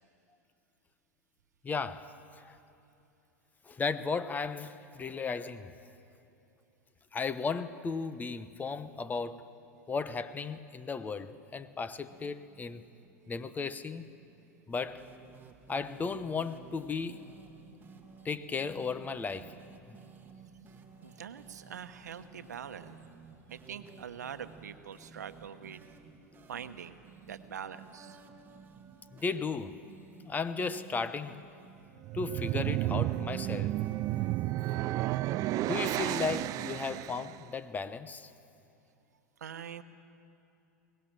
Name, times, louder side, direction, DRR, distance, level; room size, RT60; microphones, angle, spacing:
voice 1, 1.6-2.6 3.7-5.7 7.1-9.4 9.9-12.8 13.3-14.0 14.7-15.1 15.7-17.2 18.2-19.5 29.1-29.8 30.2-31.4 32.1-33.7 35.7-38.3, left 4 dB, 20° left, 0.9 m, -35 dB
sound 1, 12.1-31.9, right 5 dB, 20° right, 1.7 m, -55 dB
voice 2, 21.0-23.0 23.5-25.9 26.5-27.0 27.2-28.2 39.4-39.8, right 8 dB, 80° right, 1.0 m, -43 dB
sound 2, 32.0-37.4, right 16 dB, 40° right, 0.4 m, -32 dB
22.5 x 19.0 x 7.5 m
hypercardioid pair, 95°, 9 cm